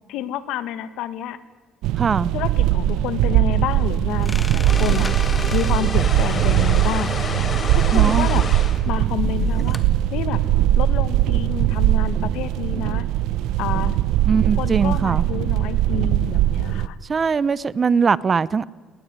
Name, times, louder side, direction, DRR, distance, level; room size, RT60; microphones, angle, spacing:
voice 1, 0.1-1.4 2.3-5.1 5.5-7.1 7.7-8.4 8.8-9.8 10.1-10.4 10.8-13.0 13.6-14.0 14.6-17.0, left 10 dB, 85° left, 1.5 m, -29 dB
sound 1, 1.8-16.9, right 13 dB, 85° right, 0.6 m, -20 dB
voice 2, 2.0-2.3 7.9-8.3 14.2-15.3 17.1-18.6, right 5 dB, 35° right, 0.7 m, -21 dB
sound 2, 4.2-6.0 8.5-10.0, left 2 dB, 15° left, 2.1 m, -30 dB
sound 3, 4.7-8.8, left 4 dB, 40° left, 3.6 m, -29 dB
20.0 x 19.5 x 9.6 m
cardioid pair, 100°, 0 cm